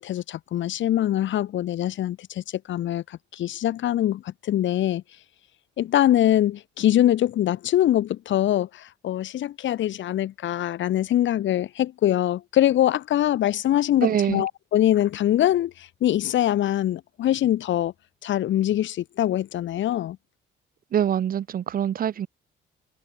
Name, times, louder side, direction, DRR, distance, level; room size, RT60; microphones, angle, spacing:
voice 1, 0.0-5.0 5.8-17.9 18.2-20.2, left 12 dB, 70° left, 1.3 m, -23 dB
voice 2, 14.0-14.4 20.9-22.3, right 9 dB, 45° right, 0.5 m, -24 dB
cardioid pair, 90°, 20 cm